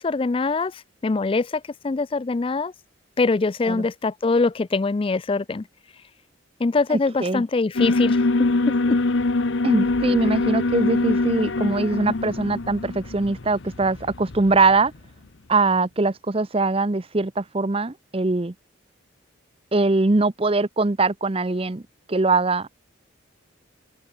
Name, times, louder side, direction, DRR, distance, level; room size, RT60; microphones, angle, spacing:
voice 1, 0.0-2.7 3.2-5.7 6.6-9.0, left 3 dB, 25° left, 0.3 m, -23 dB
voice 2, 6.9-7.4 9.6-14.9 15.5-18.5 19.7-21.8 22.1-22.7, right 3 dB, 25° right, 0.6 m, -22 dB
Alarm, 7.8-14.9, left 2 dB, 65° left, 0.9 m, -24 dB
open air
head